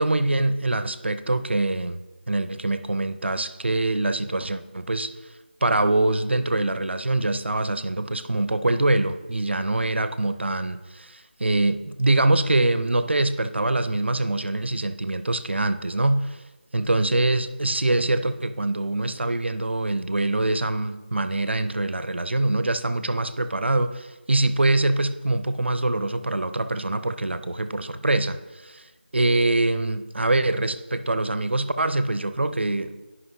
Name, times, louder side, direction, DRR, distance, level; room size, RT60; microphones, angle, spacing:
voice 1, 0.0-2.0 2.3-5.1 5.6-16.4 16.7-28.9 29.1-32.9, right 2 dB, 80° right, 11 dB, 0.5 m, -24 dB
10.5 x 5.5 x 2.7 m, 1.2 s
figure-of-eight pair, 165°, 6 cm